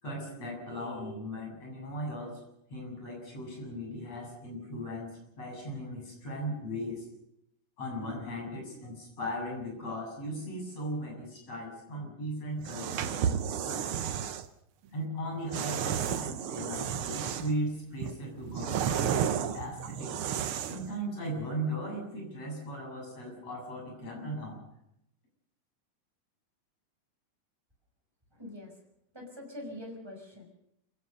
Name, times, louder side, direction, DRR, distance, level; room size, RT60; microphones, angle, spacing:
voice 1, 0.0-2.4 2.7-7.0 7.8-13.9 14.9-20.1 20.7-24.6, equal, 55° left, 1 dB, 8.5 m, -37 dB
sound 1, 12.6-14.5 15.5-17.6 18.0-20.9, right 8 dB, 65° right, 1.4 m, -32 dB
voice 2, 28.3-28.7 29.1-30.5, left 1 dB, 5° right, 0 dB, 6.0 m, -44 dB
26.5 x 16.5 x 6.7 m, 0.77 s
omnidirectional pair, 3.6 m